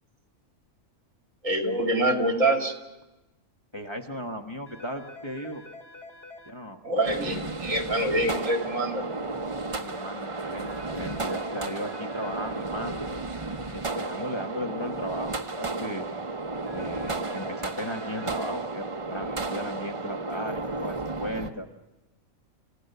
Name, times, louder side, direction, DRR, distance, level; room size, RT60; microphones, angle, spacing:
voice 1, 1.4-2.7 6.8-9.0, right 1 dB, 70° right, 3 dB, 2.9 m, -25 dB
voice 2, 3.7-5.6 6.5-6.8 9.7-13.4 13.7-16.1 16.7-21.7, equal, 20° left, 3 dB, 1.2 m, -36 dB
sound 1, 4.7-6.5 10.7-12.5 16.7-18.5, left 2 dB, 45° left, 2.5 m, -46 dB
sound 2, 7.0-21.5, right 3 dB, 25° right, 1.0 m, -33 dB
29.0 x 15.5 x 6.7 m, 1.0 s
omnidirectional pair, 1.4 m